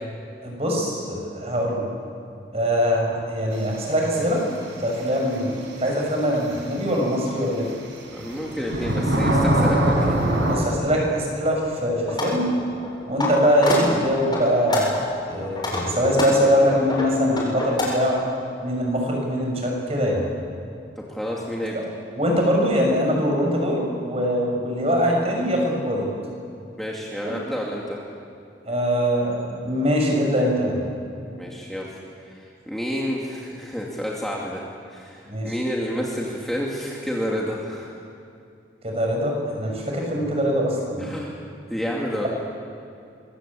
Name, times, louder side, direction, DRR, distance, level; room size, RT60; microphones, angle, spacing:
voice 1, 0.4-1.9 2.5-4.4 4.8-7.7 10.4-12.5 13.1-18.2 18.6-20.2 21.7-21.8 22.2-26.1 27.2-27.3 28.7-30.8 35.3-35.5 38.8-41.1, equal, 35° right, 0 dB, 6.4 m, -22 dB
sound 1, 5.9-6.0 8.0-10.6, right 1 dB, 80° right, 5.4 m, -21 dB
voice 2, 8.1-10.2 21.0-21.8 26.8-28.0 31.4-38.0 41.0-41.3 41.7-42.3, equal, ahead, -4 dB, 2.6 m, -30 dB
sound 2, 12.1-12.3 12.8-13.3 13.6-13.8 14.3-15.0 15.4-17.8, left 2 dB, 25° left, 7.9 m, -26 dB
25.0 x 23.0 x 8.7 m, 2.6 s
head